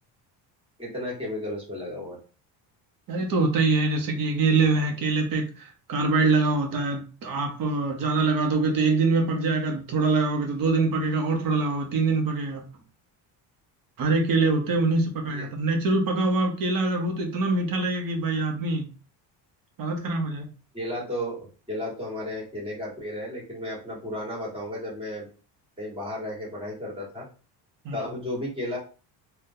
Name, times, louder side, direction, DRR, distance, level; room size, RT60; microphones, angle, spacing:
voice 1, 0.8-2.2 15.3-15.5 20.7-25.3 25.8-27.3 27.9-28.8, left 1 dB, 10° right, -4 dB, 1.5 m, -33 dB
voice 2, 3.1-12.6 14.0-18.9 19.8-20.5 27.8-28.1, right 3 dB, 50° right, 3 dB, 0.8 m, -24 dB
3.7 x 2.3 x 2.6 m, 0.37 s
cardioid pair, 150°, 44 cm